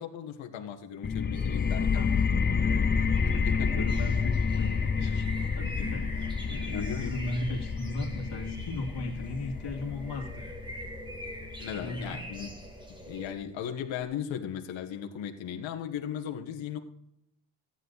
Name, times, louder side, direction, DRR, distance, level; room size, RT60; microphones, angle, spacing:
voice 1, 0.0-2.1 3.4-3.9 6.7-7.1 11.6-12.5 13.1-16.8, left 9 dB, 75° left, 4 dB, 1.5 m, -37 dB
sound 1, 1.0-12.4, left 5 dB, 20° left, 0.6 m, -29 dB
sound 2, 1.3-13.3, equal, 10° right, 2.0 m, -45 dB
voice 2, 1.9-10.4 11.8-12.2, left 2 dB, 60° left, 0 dB, 2.8 m, -37 dB
14.5 x 10.0 x 4.1 m, 0.79 s
cardioid pair, 115°, 46 cm